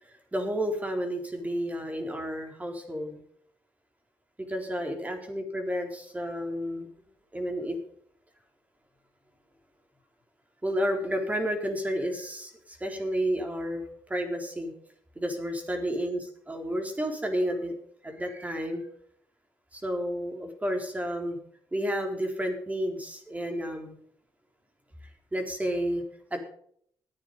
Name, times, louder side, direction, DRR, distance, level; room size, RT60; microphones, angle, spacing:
voice 1, 0.0-3.2 4.5-6.9 7.3-7.8 10.6-14.7 15.2-17.8 18.0-18.9 19.7-21.4 21.7-23.9 25.3-26.0 26.3-26.4, equal, 20° right, 4 dB, 4.0 m, -31 dB
14.0 x 9.4 x 5.4 m, 0.63 s
supercardioid pair, 60°, 8 cm